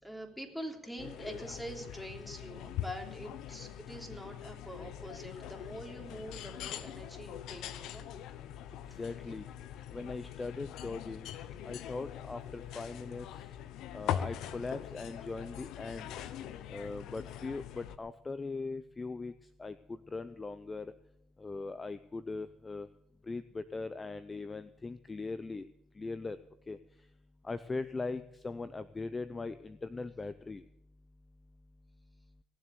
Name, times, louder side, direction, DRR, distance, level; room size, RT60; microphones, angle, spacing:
voice 1, 0.0-8.1, equal, ahead, 3 dB, 3.3 m, -44 dB
sound 1, 1.0-18.0, left 10 dB, 75° left, 0.8 m, -42 dB
voice 2, 9.0-9.4 9.9-11.3 11.6-13.4 13.9-16.1 16.7-19.3 19.6-20.9 21.4-22.9 23.3-25.7 26.0-26.4 26.7-26.8 27.4-30.6, left 3 dB, 25° left, 13 dB, 0.7 m, -40 dB
18.0 x 7.7 x 8.4 m, 0.78 s
supercardioid pair, 75°, 0 cm